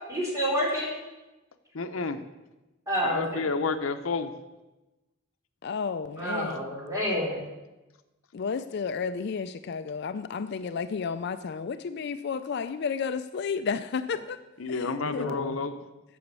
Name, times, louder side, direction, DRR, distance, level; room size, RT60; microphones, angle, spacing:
voice 1, 0.1-0.9 2.9-3.4 6.2-7.5 15.0-15.5, equal, 15° right, -4 dB, 3.4 m, -29 dB
voice 2, 1.7-2.2 3.0-4.3 14.6-15.8, left 4 dB, 80° left, 8 dB, 0.7 m, -30 dB
voice 3, 5.6-6.7 8.3-14.4 14.7-15.3, left 5 dB, 55° left, 11 dB, 0.4 m, -32 dB
8.4 x 7.1 x 8.1 m, 1.1 s
head